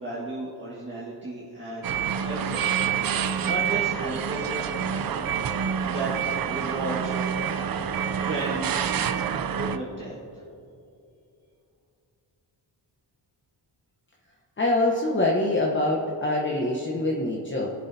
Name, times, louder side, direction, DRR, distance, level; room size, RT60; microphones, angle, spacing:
voice 1, 0.0-2.7 3.4-5.1 5.8-7.2 8.2-10.4, right 2 dB, 25° right, -8 dB, 1.7 m, -34 dB
sound 1, 1.8-9.8, right 8 dB, 50° right, 0.5 m, -27 dB
voice 2, 14.6-17.7, left 2 dB, 25° left, -2 dB, 1.0 m, -24 dB
19.0 x 7.6 x 2.8 m, 2.6 s
wide cardioid pair, 110°, 45 cm